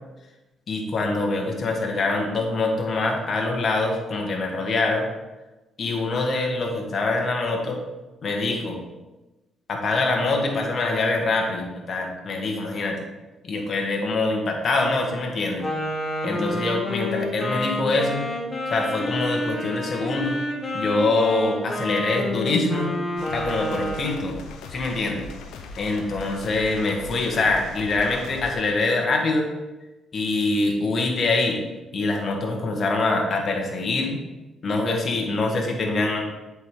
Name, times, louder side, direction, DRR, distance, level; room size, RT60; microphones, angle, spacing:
voice 1, 0.7-5.1 5.8-7.8 8.2-8.8 9.7-13.0 13.4-15.6 16.2-18.3 18.7-20.4 20.7-23.0 23.3-24.4 24.7-25.2 25.8-29.5 30.1-31.6 31.9-34.2 34.6-36.3, left 3 dB, 50° left, 1 dB, 1.4 m, -24 dB
Wind instrument woodwind instrument, 15.6-24.2, left 1 dB, 25° left, 1.6 m, -29 dB
sound 1, 23.2-28.5, left 4 dB, 85° left, 0.7 m, -39 dB
7.6 x 4.7 x 3.8 m, 1.1 s
cardioid pair, 90°, 0 cm